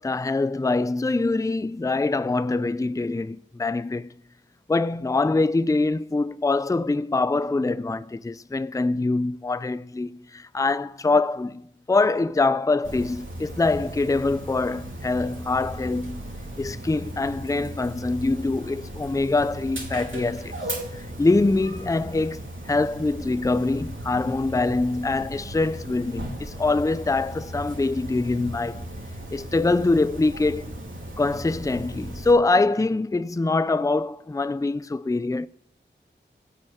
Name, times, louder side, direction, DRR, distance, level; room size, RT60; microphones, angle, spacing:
voice 1, 0.0-4.1 4.7-16.2 16.6-20.6 20.9-28.8 29.3-30.6 31.2-35.5, left 3 dB, 15° left, 0.4 m, -24 dB
Dog, 12.8-32.3, right 1 dB, 85° right, 2.7 m, -37 dB
16.0 x 6.3 x 7.6 m
wide cardioid pair, 40°, 20 cm